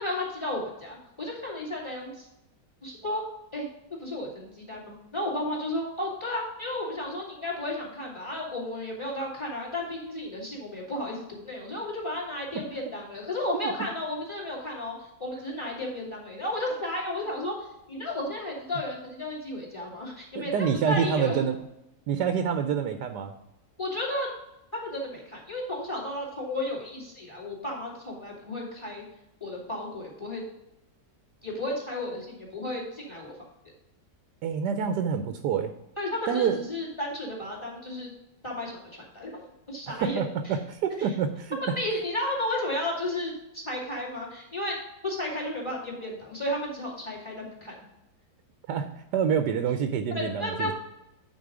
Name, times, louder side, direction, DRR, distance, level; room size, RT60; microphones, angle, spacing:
voice 1, 0.0-2.3 2.8-3.2 3.5-3.7 4.0-14.9 15.2-17.5 17.9-21.4 23.8-24.3 24.7-29.0 29.4-30.4 31.4-33.3 36.0-38.1 38.4-40.2 41.0-41.1 41.8-44.7 45.0-47.7 50.1-50.7, left 1 dB, 15° left, -3 dB, 2.8 m, -33 dB
voice 2, 20.3-21.6 22.1-23.3 34.4-35.7 36.3-36.6 39.9-41.6 48.7-50.7, right 7 dB, 85° right, 7 dB, 1.2 m, -27 dB
9.2 x 4.7 x 4.9 m, 0.88 s
omnidirectional pair, 1.8 m